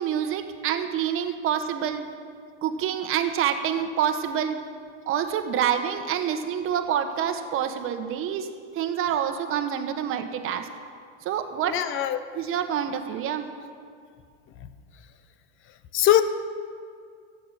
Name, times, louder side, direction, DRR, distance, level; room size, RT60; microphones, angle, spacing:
voice 1, 0.0-2.0 2.6-4.5 5.1-10.7 11.2-11.8 12.3-13.5, right 9 dB, 35° right, 8 dB, 1.4 m, -27 dB
voice 2, 11.7-12.2 15.9-16.2, left 12 dB, 35° left, 12 dB, 1.0 m, -21 dB
14.5 x 9.0 x 7.5 m, 2.2 s
hypercardioid pair, 115°, 35 cm